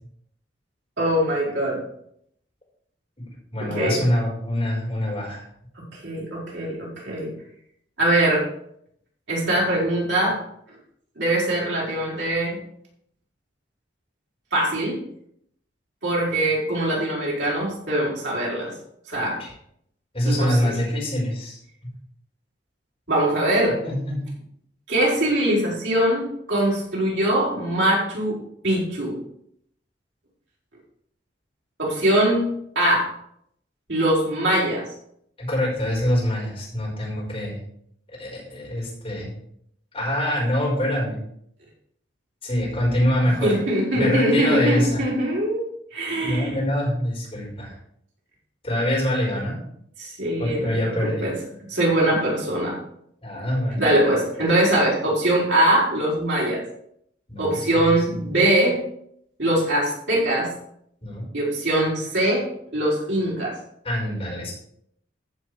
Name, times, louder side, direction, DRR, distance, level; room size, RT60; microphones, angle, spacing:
voice 1, 1.0-1.8 3.6-4.0 6.0-7.3 8.0-8.5 9.3-10.4 11.2-12.6 14.5-15.0 16.0-18.7 19.1-19.4 20.2-20.7 23.1-23.8 24.9-28.4 28.6-29.2 31.8-32.5 32.7-33.1 33.9-34.8 43.4-46.6 50.0-51.3 51.7-52.8 53.8-56.6 57.4-58.8 59.4-60.5 61.3-63.6, right 1 dB, 75° right, -5 dB, 4.9 m, -22 dB
voice 2, 3.5-5.4 19.1-19.5 20.1-21.6 23.8-24.2 35.4-37.6 38.2-39.3 39.9-41.2 42.4-43.6 44.0-45.0 46.2-47.7 48.6-49.6 50.4-51.2 53.2-53.8 57.3-58.2 61.0-61.3 63.8-64.5, equal, 30° left, -5 dB, 5.2 m, -25 dB
14.5 x 5.4 x 4.9 m, 0.71 s
head